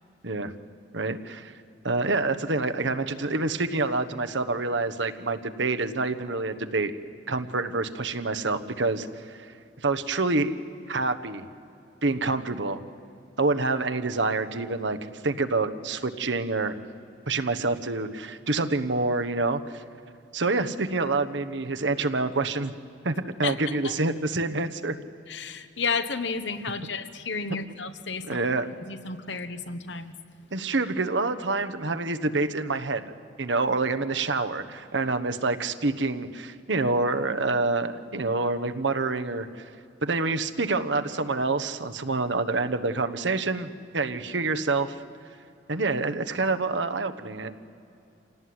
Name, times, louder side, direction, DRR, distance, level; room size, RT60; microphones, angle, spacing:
voice 1, 0.9-1.5 1.8-6.9 7.3-9.4 9.8-10.5 10.9-11.4 12.0-12.8 13.4-15.0 15.2-16.7 17.3-19.8 20.3-22.7 23.0-25.0 28.3-28.7 30.5-33.0 33.4-39.6 40.0-44.9 45.7-47.5, right 3 dB, 80° right, 9 dB, 1.2 m, -27 dB
voice 2, 23.4-23.8 25.3-28.4 28.8-30.1, left 4 dB, 75° left, 10 dB, 1.3 m, -32 dB
26.5 x 18.0 x 9.6 m, 2.7 s
head